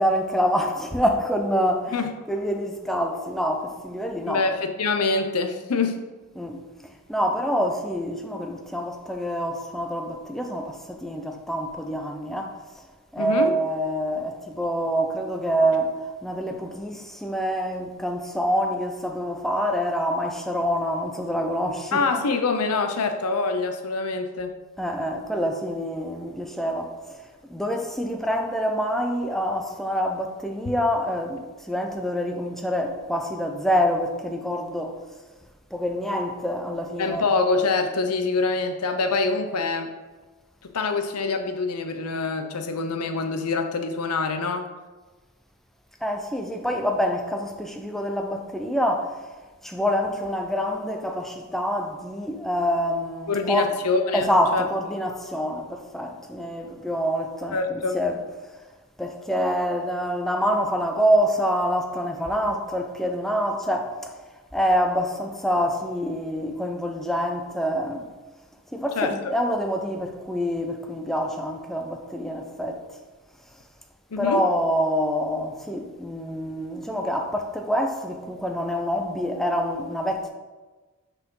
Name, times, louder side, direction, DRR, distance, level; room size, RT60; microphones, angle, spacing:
voice 1, 0.0-4.4 6.4-12.5 13.1-22.2 24.8-27.2 27.5-35.0 35.7-37.3 46.0-49.3 49.6-53.7 54.1-58.2 59.0-64.1 64.5-68.1 68.7-72.8 74.2-80.3, equal, ahead, 0.5 m, -26 dB
voice 2, 4.3-6.0 13.2-13.5 21.9-24.5 37.0-39.9 40.7-44.7 53.3-54.6 57.5-58.0 69.0-69.1 74.1-74.4, left 4 dB, 90° left, 0.7 m, -25 dB
6.4 x 5.0 x 3.7 m
head